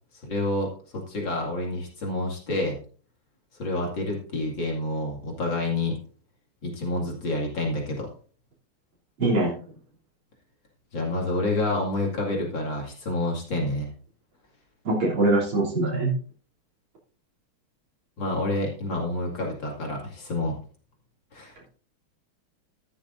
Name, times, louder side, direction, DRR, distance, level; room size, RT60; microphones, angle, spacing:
voice 1, 0.2-2.8 3.6-5.9 6.6-8.1 10.9-13.9 18.2-20.6 21.3-21.7, left 2 dB, 65° left, -1 dB, 3.1 m, -28 dB
voice 2, 9.2-9.6 14.8-16.1, right 2 dB, 85° right, -5 dB, 4.1 m, -23 dB
13.0 x 12.0 x 2.6 m, 0.42 s
omnidirectional pair, 2.2 m